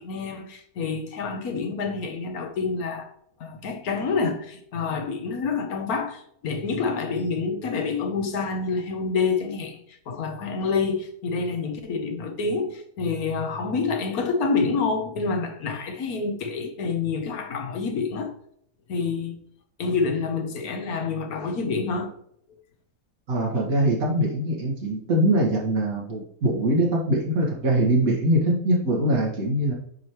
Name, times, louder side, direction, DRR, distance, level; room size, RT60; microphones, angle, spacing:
voice 1, 0.0-3.1 3.4-18.3 18.9-19.4 19.8-22.1, left 4 dB, 80° left, 1.5 m, -27 dB
voice 2, 23.3-29.7, right 1 dB, 70° right, 2.3 m, -22 dB
8.4 x 5.0 x 3.1 m
omnidirectional pair, 1.5 m